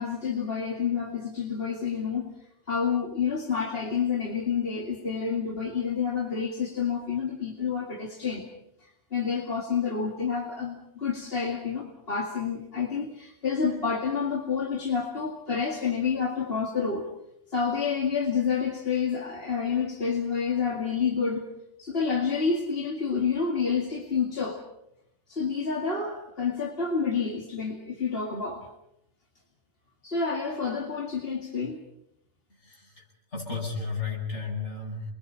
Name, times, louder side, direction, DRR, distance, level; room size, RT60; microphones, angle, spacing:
voice 1, 0.0-2.3 2.7-8.5 9.1-17.1 17.5-21.5 21.8-24.6 25.3-28.7 30.0-31.8, left 6 dB, 55° left, 0 dB, 2.4 m, -29 dB
voice 2, 32.6-33.0 33.3-35.0, left 4 dB, 80° left, -2 dB, 8.3 m, -33 dB
29.0 x 21.5 x 5.7 m, 0.79 s
omnidirectional pair, 1.2 m